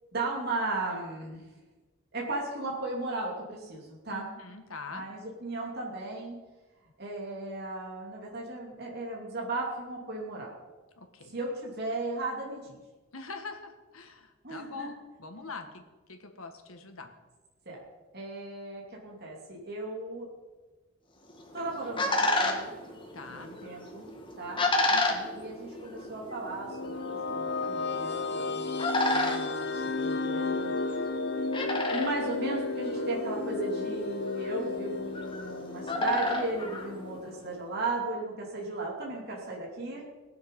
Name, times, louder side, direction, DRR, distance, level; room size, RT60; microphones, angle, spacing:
voice 1, 0.1-1.5 2.1-4.3 4.9-6.3 7.0-10.5 11.3-12.8 14.4-14.9 17.7-17.8 18.1-20.3 21.5-22.7 23.4-24.0 24.4-24.6 25.3-28.8 29.1-31.1 31.9-40.0, right 2 dB, 50° right, -3 dB, 2.7 m, -36 dB
voice 2, 4.1-5.1 11.0-11.3 13.1-15.8 16.1-17.1 23.1-23.5 24.9-25.3, left 4 dB, 85° left, 5 dB, 1.7 m, -43 dB
sound 1, 21.3-37.6, left 2 dB, 25° left, 1.6 m, -33 dB
sound 2, 26.3-37.2, left 3 dB, 50° left, 0.7 m, -33 dB
19.5 x 7.5 x 5.4 m, 1.3 s
head